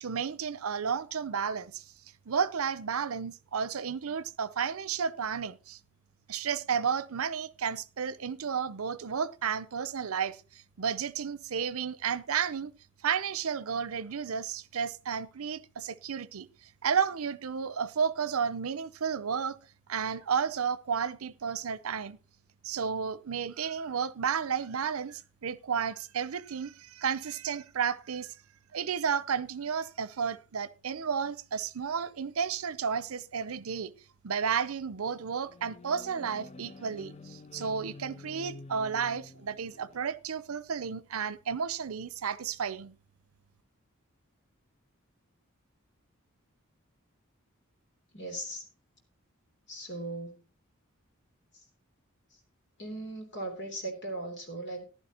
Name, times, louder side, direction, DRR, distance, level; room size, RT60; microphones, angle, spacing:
voice 1, 0.0-1.8 2.3-5.8 6.3-10.4 10.8-12.7 13.0-16.5 16.8-19.6 19.9-22.2 22.6-28.3 28.7-33.9 34.2-42.9, right 6 dB, 85° right, 0.6 m, -32 dB
sound 1, 35.0-40.1, left 3 dB, 30° left, 0.5 m, -49 dB
voice 2, 48.1-48.6 49.7-50.4 51.5-51.6 52.3-52.4 52.8-54.8, right 1 dB, 55° left, 3.2 m, -38 dB
14.5 x 11.0 x 2.9 m
head